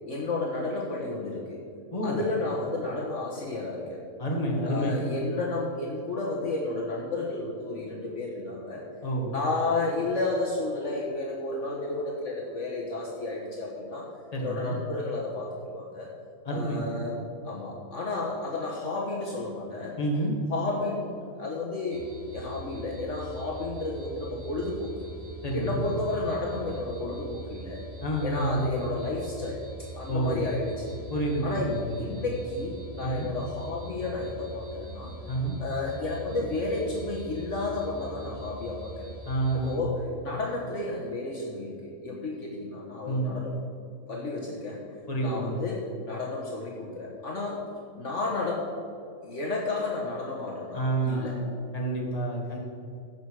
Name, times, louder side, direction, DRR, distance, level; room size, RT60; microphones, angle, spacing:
voice 1, 0.1-1.6 2.0-4.0 4.6-8.8 9.3-14.1 14.4-16.1 16.5-17.1 17.4-19.9 20.5-25.1 25.5-27.9 28.2-29.6 29.9-30.9 31.4-35.1 35.6-39.1 39.5-43.5 44.1-44.8 45.2-47.6 48.0-48.7 49.2-51.4, left 2 dB, 55° left, -3 dB, 1.6 m, -32 dB
voice 2, 4.2-5.2 9.0-9.3 14.3-14.8 16.4-16.8 20.0-20.3 25.4-25.8 28.0-28.7 30.1-30.4 31.1-32.2 33.0-33.3 35.3-35.6 39.3-39.9 43.0-43.4 45.1-45.6 50.7-52.6, right 1 dB, 25° left, -2 dB, 2.0 m, -29 dB
sound 1, 21.9-39.8, right 2 dB, 70° right, 2.7 m, -43 dB
15.5 x 6.3 x 4.8 m, 2.6 s
omnidirectional pair, 1.5 m